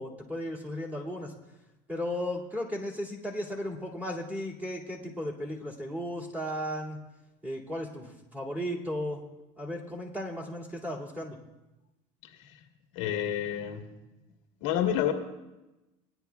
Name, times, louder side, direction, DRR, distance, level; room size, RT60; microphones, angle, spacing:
voice 1, 0.0-1.3 1.9-7.0 7.4-9.2 9.6-11.4, equal, 10° right, -3 dB, 2.3 m, -35 dB
voice 2, 12.9-13.8 14.6-15.1, left 10 dB, 85° left, 4 dB, 1.3 m, -28 dB
19.5 x 10.0 x 2.3 m, 1.0 s
supercardioid pair, 120°, 16 cm